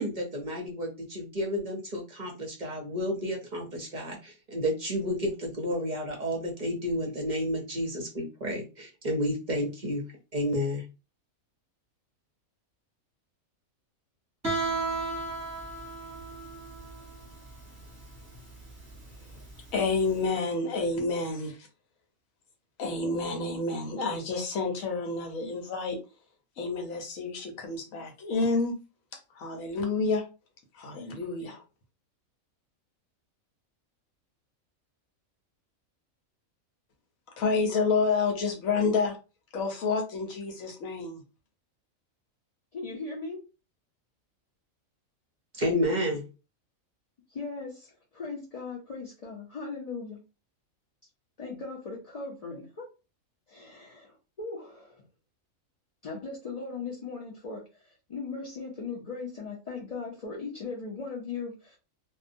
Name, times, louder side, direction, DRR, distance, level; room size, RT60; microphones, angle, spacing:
voice 1, 0.0-10.0 10.3-10.8 45.5-46.2, equal, 50° right, 0.6 m, -31 dB
Guitar, 14.4-20.1, right 3 dB, 15° right, 0.8 m, -35 dB
voice 2, 19.7-21.7 22.8-26.0 26.6-28.8 29.3-30.2 30.7-31.6 37.4-39.2 39.5-41.2, left 4 dB, 75° left, 1.1 m, -29 dB
voice 3, 42.7-43.4 47.3-50.2 51.4-52.8 53.5-55.0 56.0-61.8, left 4 dB, 50° left, 0.4 m, -38 dB
2.7 x 2.1 x 2.5 m
omnidirectional pair, 1.4 m